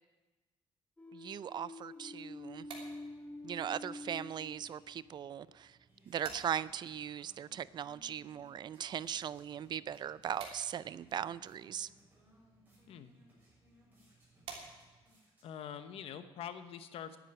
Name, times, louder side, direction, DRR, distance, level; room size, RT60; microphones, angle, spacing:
sound 1, 1.0-5.3, left 1 dB, 15° left, 1.2 m, -48 dB
voice 1, 1.1-2.7 3.4-5.8 6.1-11.9, right 9 dB, 50° right, 0.4 m, -39 dB
sound 2, 2.3-15.2, right 5 dB, 80° right, 3.1 m, -56 dB
sound 3, 5.4-15.9, left 1 dB, 20° right, 6.5 m, -68 dB
voice 2, 15.4-17.2, left 8 dB, 80° left, 1.0 m, -45 dB
11.0 x 10.0 x 9.0 m
cardioid pair, 135°, 10 cm